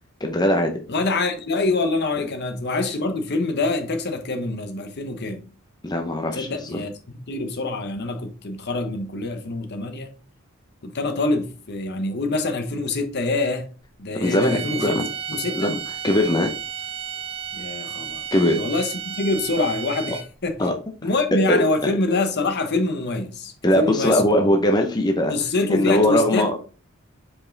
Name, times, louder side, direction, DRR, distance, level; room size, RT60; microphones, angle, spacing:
voice 1, 0.2-0.8 5.8-6.8 14.2-15.1 15.5-16.5 18.3-18.6 20.6-20.7 21.5-21.9 23.6-25.3 25.7-26.5, left 1 dB, 20° left, 0.7 m, -20 dB
voice 2, 0.9-5.4 6.3-6.9 7.3-10.1 10.8-13.7 14.0-15.0 15.3-15.7 17.5-18.2 18.5-20.6 21.0-24.2 25.3-26.5, left 2 dB, 50° left, 1.0 m, -25 dB
sound 1, 14.2-20.4, right 8 dB, 25° right, 0.5 m, -33 dB
5.4 x 5.0 x 3.9 m
head